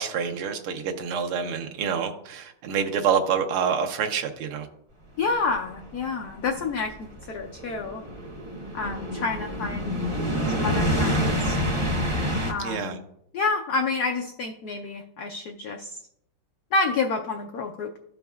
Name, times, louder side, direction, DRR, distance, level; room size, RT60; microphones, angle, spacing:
voice 1, 0.0-4.7 12.6-13.0, right 7 dB, 85° right, 4 dB, 1.7 m, -27 dB
voice 2, 5.2-8.0 8.7-10.0 10.5-11.6 12.5-13.0 13.3-16.0 16.7-18.0, left 4 dB, 85° left, 3 dB, 0.8 m, -29 dB
sound 1, 5.5-12.5, equal, 30° right, 0.5 m, -27 dB
13.0 x 5.2 x 2.3 m, 0.74 s
omnidirectional pair, 2.3 m